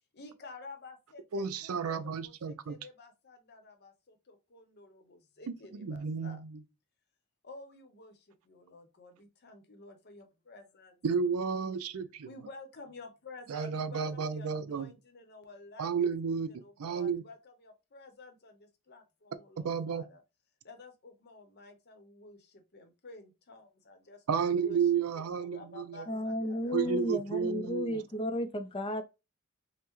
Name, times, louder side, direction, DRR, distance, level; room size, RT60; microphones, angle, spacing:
voice 1, 0.1-6.4 7.4-11.0 12.2-15.9 16.5-20.2 20.6-26.9, left 3 dB, 45° left, 0.7 m, -51 dB
voice 2, 1.3-2.8 5.7-6.6 11.0-12.3 13.5-14.9 15.8-17.2 19.6-20.0 24.3-26.1 26.7-28.0, right 6 dB, 80° right, 0.4 m, -32 dB
voice 3, 26.1-29.0, equal, 25° left, 0.4 m, -33 dB
5.4 x 2.1 x 3.0 m
head